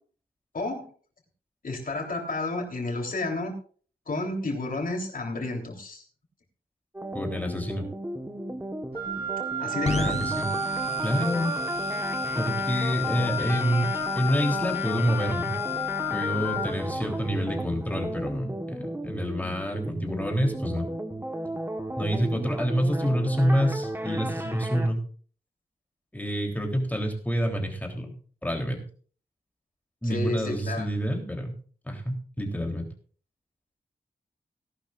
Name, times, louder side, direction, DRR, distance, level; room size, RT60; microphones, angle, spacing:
voice 1, 0.5-0.9 1.6-3.5 4.1-6.0 9.6-10.2 30.0-30.9, left 2 dB, 60° left, 2 dB, 3.6 m, -31 dB
sound 1, 6.9-24.9, right 1 dB, 15° right, 1.4 m, -34 dB
voice 2, 7.1-7.9 9.9-10.5 11.0-12.0 12.4-15.6 16.1-20.9 22.0-25.0 26.1-28.2 28.4-28.8 30.0-31.6 31.9-32.9, equal, 10° left, 2 dB, 3.5 m, -28 dB
Wind instrument woodwind instrument, 9.0-16.7, left 3 dB, 85° right, 3.5 m, -32 dB
sound 2, 9.8-17.4, left 4 dB, 45° left, 1.0 m, -38 dB
18.5 x 11.5 x 2.5 m, 0.42 s
wide cardioid pair, 90°, 16 cm